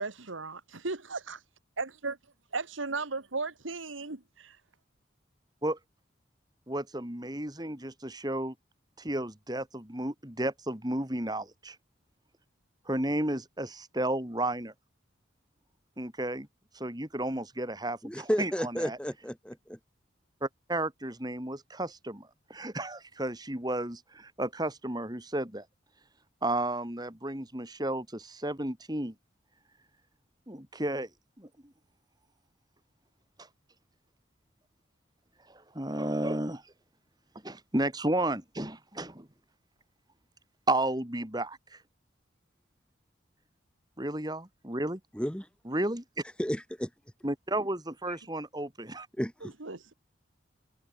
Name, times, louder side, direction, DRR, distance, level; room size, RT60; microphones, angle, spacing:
voice 1, 0.0-1.4 1.8-2.2 2.5-4.6 49.4-49.9, right 3 dB, 85° right, 1.9 m, -36 dB
voice 2, 6.7-8.5 9.0-11.8 12.9-14.7 16.0-16.5 16.7-19.0 20.4-25.6 26.4-29.1 30.5-31.1 31.4-31.5 35.5-36.6 37.4-39.3 40.7-41.8 44.0-45.0 45.7-46.0 47.2-49.1, right 1 dB, 20° right, 3.0 m, -33 dB
voice 3, 18.0-19.8 45.1-45.5 46.4-46.9 49.2-49.5, equal, 5° left, 2.1 m, -32 dB
head